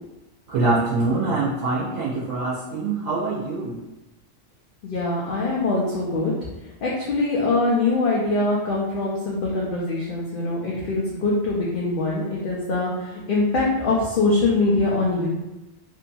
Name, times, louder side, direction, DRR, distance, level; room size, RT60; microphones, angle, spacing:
voice 1, 0.5-3.8, right 3 dB, 85° right, -6 dB, 1.0 m, -24 dB
voice 2, 4.8-6.5 6.8-15.3, left 2 dB, 60° left, -5 dB, 0.6 m, -23 dB
2.8 x 2.6 x 2.3 m, 0.99 s
omnidirectional pair, 1.3 m